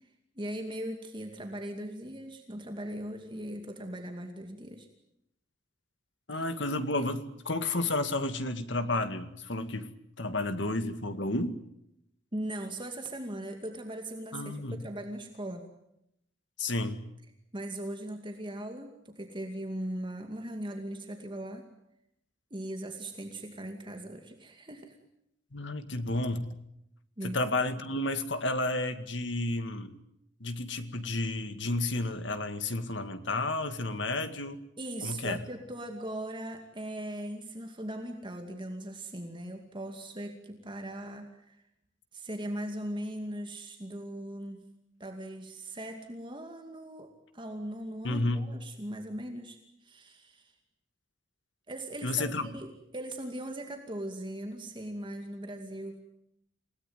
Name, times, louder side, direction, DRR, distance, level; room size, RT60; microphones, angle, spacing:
voice 1, 0.4-4.9 12.3-15.7 17.5-21.7 22.5-25.0 27.2-27.4 34.8-41.6 42.1-44.7 45.0-50.5 51.7-56.0, right 1 dB, 25° right, 4 dB, 2.4 m, -39 dB
voice 2, 6.3-9.9 10.2-11.6 14.3-14.9 16.6-17.0 25.5-26.5 27.2-30.0 30.4-34.6 35.0-35.4 48.0-48.5 52.0-52.6, left 2 dB, 65° left, 9 dB, 2.1 m, -31 dB
28.5 x 18.0 x 9.4 m, 0.80 s
head